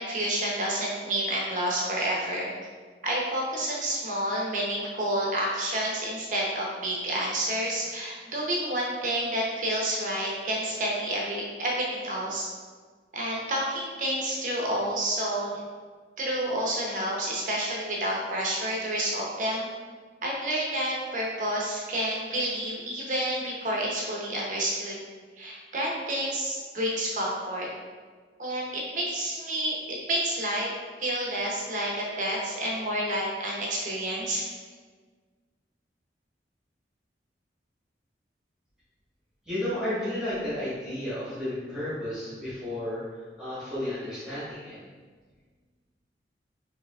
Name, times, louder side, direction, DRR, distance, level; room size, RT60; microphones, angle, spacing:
voice 1, 0.0-2.5 3.0-12.5 13.1-15.6 16.2-19.7 20.2-25.0 25.4-27.7 28.4-29.8 30.1-30.7 31.0-34.5, right 1 dB, 45° right, -3 dB, 0.7 m, -29 dB
voice 2, 39.5-43.0 43.4-44.8, left 1 dB, 5° right, -12 dB, 1.3 m, -32 dB
4.8 x 3.0 x 2.4 m, 1.5 s
head